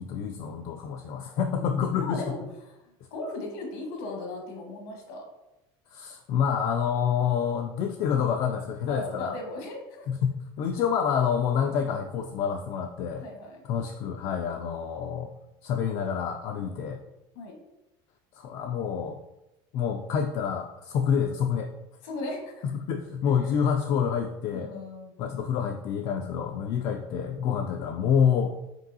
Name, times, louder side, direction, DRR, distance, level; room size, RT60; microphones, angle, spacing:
voice 1, 0.0-2.2 5.9-9.4 10.1-10.3 10.6-13.2 13.7-15.3 15.6-17.0 18.4-19.2 19.7-21.7 22.8-24.7 25.2-28.6, left 7 dB, 50° left, 3 dB, 0.3 m, -27 dB
voice 2, 1.4-2.4 2.6-2.8 3.1-5.2 8.9-10.1 13.2-13.6 16.6-16.9 17.3-17.5 22.0-22.6 23.5-23.7 24.5-25.1, left 2 dB, 85° left, 1 dB, 1.3 m, -37 dB
5.3 x 3.0 x 2.7 m, 0.92 s
cardioid pair, 145°, 12 cm